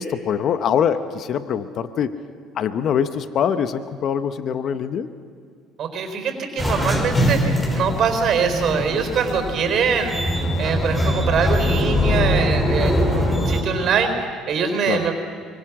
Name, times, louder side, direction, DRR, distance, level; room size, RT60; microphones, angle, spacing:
voice 1, 0.0-2.1 2.5-5.1 14.9-15.1, left 8 dB, 55° left, 11 dB, 1.0 m, -23 dB
voice 2, 5.8-10.2 10.6-15.2, right 6 dB, 55° right, 6 dB, 4.3 m, -23 dB
sound 1, 6.6-13.6, left 1 dB, 25° left, 5.8 m, -22 dB
24.5 x 24.5 x 6.2 m, 2.1 s
supercardioid pair, 75°, 0 cm